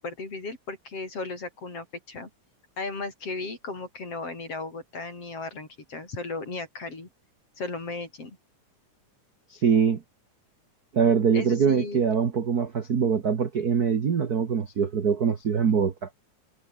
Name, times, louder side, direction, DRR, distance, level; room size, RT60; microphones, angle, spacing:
voice 1, 0.0-2.3 2.8-7.1 7.6-8.4 11.3-12.0, left 3 dB, 50° left, 6.9 m, -35 dB
voice 2, 9.5-10.0 10.9-16.1, right 6 dB, 45° right, 1.4 m, -23 dB
omnidirectional pair, 3.6 m